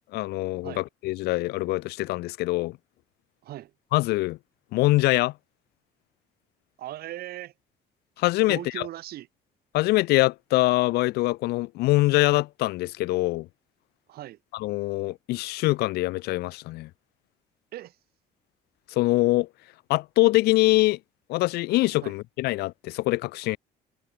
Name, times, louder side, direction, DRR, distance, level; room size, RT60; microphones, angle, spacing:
voice 1, 0.1-2.8 3.9-4.4 4.7-5.3 8.2-8.8 9.7-13.5 14.5-16.9 18.9-19.5 19.9-21.0 21.3-23.6, left 19 dB, 75° left, 0.4 m, -24 dB
voice 2, 6.8-7.5 8.5-9.3 14.1-14.4 17.7-18.0 22.0-22.1, right 14 dB, 65° right, 1.0 m, -38 dB
cardioid pair, 110°, 17 cm